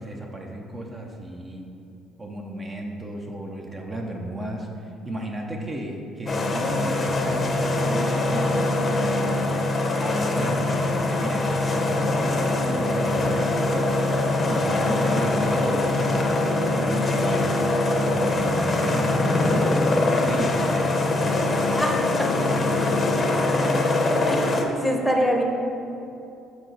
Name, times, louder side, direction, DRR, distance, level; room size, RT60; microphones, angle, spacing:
voice 1, 0.0-1.7 2.2-9.4 10.0-14.0 14.5-16.4 16.8-17.5 17.9-21.6 22.3-23.1, right 1 dB, 25° right, 1 dB, 0.7 m, -33 dB
sound 1, 6.3-24.6, left 2 dB, 35° left, 0.7 m, -23 dB
voice 2, 21.7-22.4 23.6-25.4, equal, 5° left, 1 dB, 0.9 m, -26 dB
6.2 x 4.1 x 3.9 m, 2.7 s
supercardioid pair, 75°, 0 cm